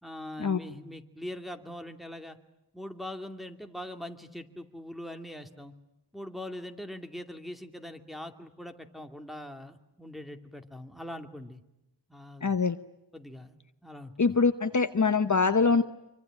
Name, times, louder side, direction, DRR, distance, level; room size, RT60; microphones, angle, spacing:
voice 1, 0.0-2.4 2.7-5.7 6.1-11.6 12.1-12.5 13.1-13.5 13.8-14.1, left 1 dB, ahead, 5 dB, 2.5 m, -42 dB
voice 2, 12.4-12.8 14.2-15.8, left 4 dB, 45° left, 10 dB, 1.0 m, -24 dB
26.5 x 24.5 x 9.0 m, 0.91 s
wide cardioid pair, 65°, 43 cm